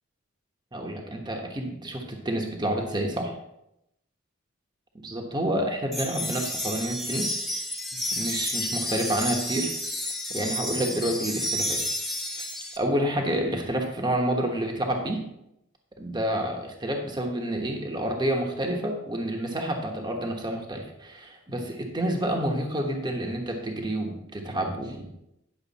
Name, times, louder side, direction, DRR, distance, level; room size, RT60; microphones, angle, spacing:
voice 1, 0.7-3.4 5.0-7.3 8.1-9.7 10.3-11.8 12.4-12.5 12.8-15.2 16.0-25.2, right 1 dB, 20° right, 2 dB, 1.1 m, -29 dB
sound 1, 5.9-12.8, left 1 dB, ahead, 0.8 m, -31 dB
10.5 x 6.4 x 4.1 m, 0.83 s
head